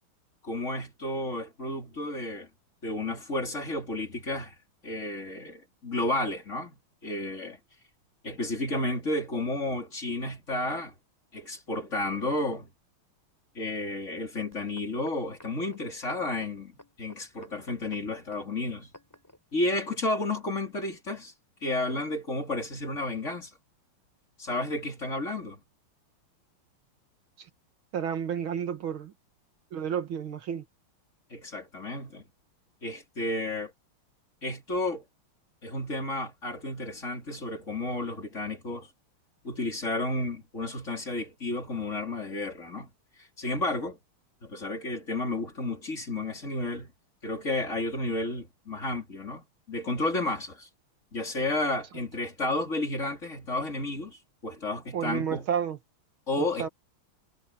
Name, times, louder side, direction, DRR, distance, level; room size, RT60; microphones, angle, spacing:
voice 1, 0.4-2.5 2.8-4.6 4.8-6.8 7.0-7.6 8.2-10.9 11.3-12.7 13.6-16.7 17.0-18.9 19.5-21.3 21.6-23.5 24.4-25.6 31.3-32.2 32.8-33.7 34.4-35.0 35.6-38.9 39.4-42.9 43.4-44.0 44.4-46.9 47.2-50.7 51.1-55.5 56.3-56.7, left 2 dB, 35° left, 3.7 m, -32 dB
sound 1, 14.5-19.4 20.1-20.2, left 1 dB, 10° left, 4.0 m, -53 dB
voice 2, 27.9-29.1 29.7-30.6 54.9-55.8 56.4-56.7, right 8 dB, 70° right, 2.3 m, -31 dB
omnidirectional pair, 2.3 m